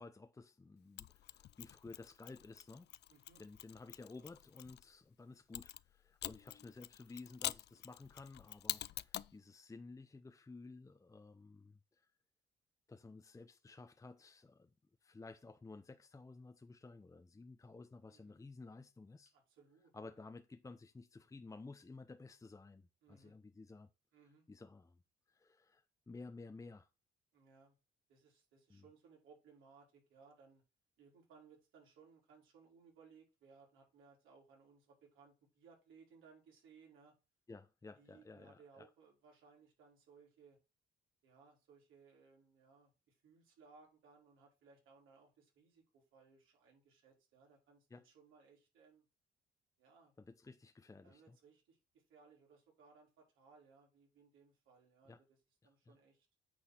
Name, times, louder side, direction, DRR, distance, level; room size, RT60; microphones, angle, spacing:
voice 1, 0.0-2.9 3.4-12.1 12.9-14.7 15.0-19.4 19.9-23.9 24.5-25.0 25.3-26.9 28.7-28.8 37.5-38.9 47.9-48.1 50.2-51.4 55.1-55.2 55.8-56.0, left 3 dB, 15° left, 0.6 m, -54 dB
Mechanisms, 1.0-4.8 5.5-9.4, left 13 dB, 60° left, 0.4 m, -46 dB
voice 2, 3.1-3.4 18.1-18.4 19.3-20.1 23.0-23.3 24.1-24.4 27.3-27.8 28.1-30.6 31.0-37.1 38.0-40.6 41.2-49.0 49.8-50.1 51.0-55.2 55.6-56.3, right 5 dB, 85° right, 4.1 m, -64 dB
8.9 x 4.0 x 6.4 m
cardioid pair, 90°, 20 cm